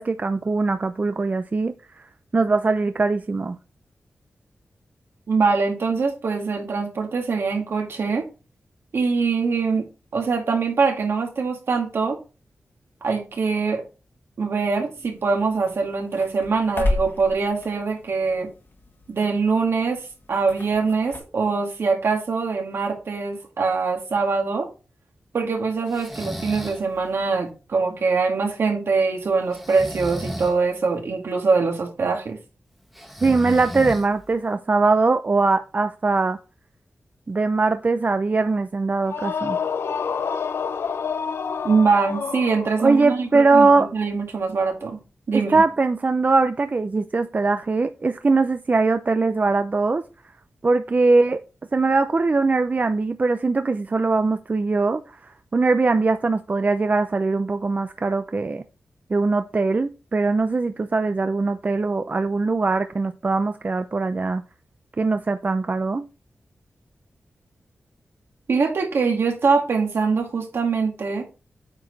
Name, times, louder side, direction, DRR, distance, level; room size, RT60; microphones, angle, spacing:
voice 1, 0.0-1.7 2.3-3.6 33.2-36.4 37.3-39.6 42.8-43.9 45.3-50.0 50.6-51.4 51.7-58.6 59.1-64.4 65.0-66.0, right 3 dB, 40° right, 0.5 m, -21 dB
voice 2, 5.3-8.3 8.9-9.9 10.1-12.2 13.0-13.8 14.4-18.5 19.1-20.0 20.3-24.7 25.3-32.4 41.6-45.0 45.3-45.6 68.5-71.2, right 4 dB, 70° right, 2.2 m, -23 dB
sound 1, 14.9-21.2, left 2 dB, 55° left, 1.8 m, -33 dB
Breathing, 25.9-26.8 29.5-30.6 32.9-34.3, equal, ahead, 1.5 m, -33 dB
sound 2, 39.0-43.0, left 6 dB, 75° left, 0.6 m, -28 dB
8.5 x 4.8 x 4.0 m
cardioid pair, 65°, 4 cm